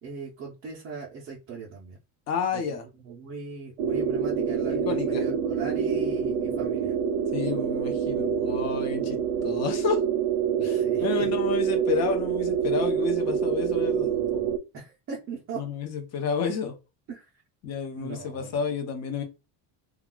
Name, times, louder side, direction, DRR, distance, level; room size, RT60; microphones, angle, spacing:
voice 1, 0.0-2.0 2.5-2.6 3.0-6.9 10.6-11.3 14.7-15.6 17.1-17.3 18.0-18.7, right 4 dB, 30° right, 0.4 m, -39 dB
voice 2, 2.3-2.9 4.6-5.2 7.3-10.0 10.6-14.5 15.6-16.7 17.6-19.2, left 6 dB, 35° left, 0.6 m, -30 dB
sound 1, 3.8-14.6, right 7 dB, 85° right, 0.6 m, -26 dB
2.3 x 2.3 x 3.6 m
cardioid pair, 170°, 46 cm